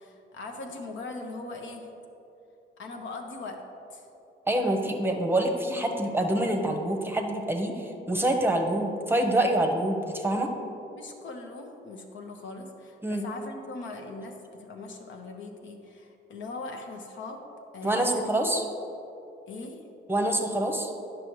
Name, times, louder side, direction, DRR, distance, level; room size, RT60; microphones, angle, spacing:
voice 1, 0.0-1.9 2.8-3.6 3.9-4.1 10.9-17.4 17.7-18.2 19.5-19.8, left 3 dB, 70° left, 3 dB, 0.9 m, -40 dB
voice 2, 4.5-10.5 13.0-13.2 17.8-18.6 20.1-20.9, right 1 dB, 10° right, 3 dB, 0.8 m, -26 dB
9.7 x 6.2 x 3.1 m, 2.9 s
cardioid pair, 90°, 20 cm